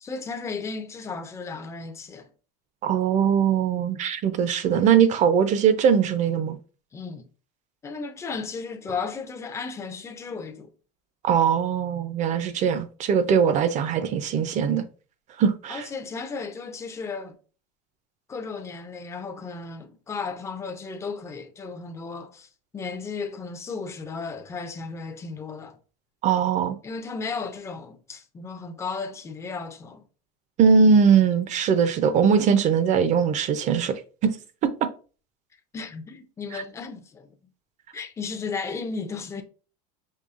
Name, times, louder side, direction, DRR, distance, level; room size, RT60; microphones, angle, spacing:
voice 1, 0.0-2.3 6.9-7.3 7.8-10.7 15.7-17.4 18.3-22.5 22.7-25.8 26.8-30.0 35.7-37.3 37.9-39.4, left 4 dB, 15° left, 0.5 m, -34 dB
voice 2, 2.8-6.6 11.2-14.8 15.4-15.9 26.2-26.8 30.6-34.4 34.6-34.7, right 7 dB, 35° right, 0.5 m, -21 dB
5.5 x 3.1 x 2.5 m
supercardioid pair, 140°, 21 cm